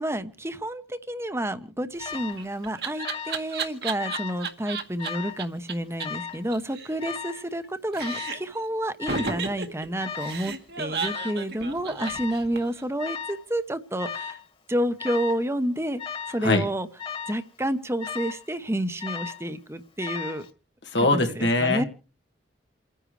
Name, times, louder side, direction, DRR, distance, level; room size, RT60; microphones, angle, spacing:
voice 1, 0.0-14.4 14.7-16.0 16.3-16.9 17.3-20.5 21.1-21.8, right 1 dB, 15° right, 11 dB, 1.0 m, -30 dB
Alarm, 2.0-2.4 3.0-3.5 3.7-4.4 5.0-5.4 6.0-6.4 7.0-7.4 8.0-8.4 9.0-9.4 10.0-10.4 11.0-11.4 12.0-12.4 13.0-13.4 14.0-14.4 15.0-15.4 16.0-16.4 17.0-17.4 18.0-18.5 19.0-19.5 20.0-20.5, left 7 dB, 30° left, 1.7 m, -36 dB
Laughter, 2.0-5.1 5.4-5.5 5.7-5.8 6.0-6.1 6.3-7.7 7.9-8.6 9.1-12.8, right 5 dB, 65° right, 1.8 m, -33 dB
voice 2, 20.9-21.8, left 2 dB, 85° left, 4 dB, 1.9 m, -22 dB
29.0 x 10.0 x 3.3 m, 0.37 s
head